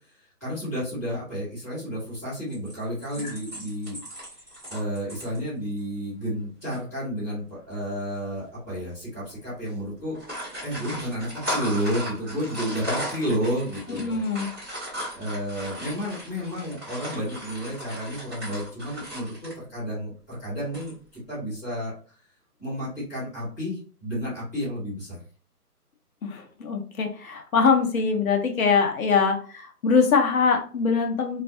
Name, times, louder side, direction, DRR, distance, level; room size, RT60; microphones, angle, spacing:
voice 1, 0.4-4.0 4.7-10.2 10.6-14.2 15.1-21.9 22.6-25.2, equal, 10° left, -13 dB, 0.9 m, -31 dB
sound 1, 2.5-5.4 5.8-5.9 6.2-6.4 6.7-6.8 7.8-8.1 8.7-8.9 9.1-9.3 10.0-19.6 20.6-21.1, equal, 15° right, 0.9 m, -36 dB
voice 2, 13.9-14.5 26.2-31.4, left 5 dB, 60° left, 3 dB, 0.7 m, -23 dB
2.3 x 2.2 x 2.6 m, 0.40 s
hypercardioid pair, 165°, 47 cm